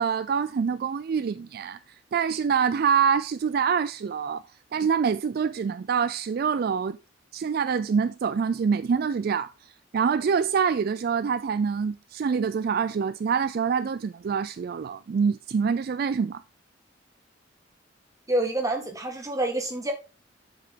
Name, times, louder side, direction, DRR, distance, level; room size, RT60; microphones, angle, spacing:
voice 1, 0.0-1.8 2.1-4.4 4.7-7.0 7.3-16.4, right 6 dB, 50° right, 0.3 m, -25 dB
voice 2, 18.3-19.9, right 1 dB, 15° right, 1.7 m, -27 dB
7.6 x 6.8 x 3.7 m
head